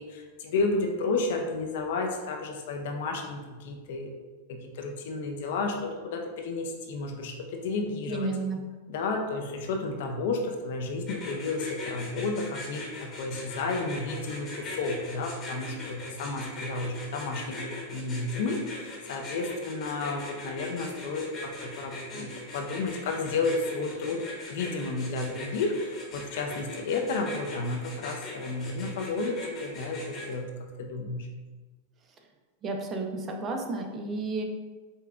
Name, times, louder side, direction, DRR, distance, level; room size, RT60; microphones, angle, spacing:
voice 1, 0.0-4.1 4.5-8.3 8.9-17.6 17.9-30.4 30.8-31.3, left 3 dB, 70° left, 3 dB, 0.5 m, -32 dB
voice 2, 8.1-8.6 32.6-34.4, right 3 dB, 30° right, 3 dB, 0.5 m, -32 dB
sound 1, 11.1-30.3, left 2 dB, 30° left, 1.0 m, -40 dB
5.2 x 2.2 x 2.4 m, 1.3 s
hypercardioid pair, 120°, 0 cm